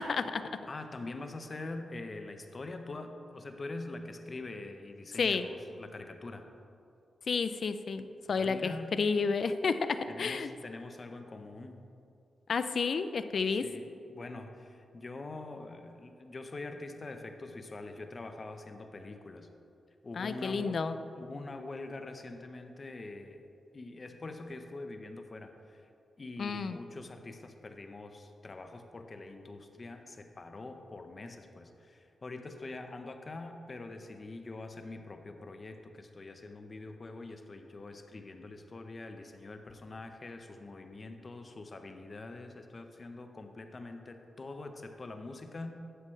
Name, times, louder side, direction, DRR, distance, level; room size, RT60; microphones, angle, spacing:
voice 1, 0.0-0.5 5.2-5.5 7.3-10.5 12.5-13.7 20.2-20.9 26.4-26.8, left 5 dB, 65° left, 11 dB, 0.4 m, -31 dB
voice 2, 0.7-6.5 8.4-9.0 10.1-11.8 13.6-19.5 20.0-20.8 21.2-23.5 23.7-25.8 26.2-45.7, left 2 dB, 40° left, 6 dB, 0.8 m, -44 dB
11.0 x 7.7 x 3.2 m, 2.6 s
cardioid pair, 65°, 0 cm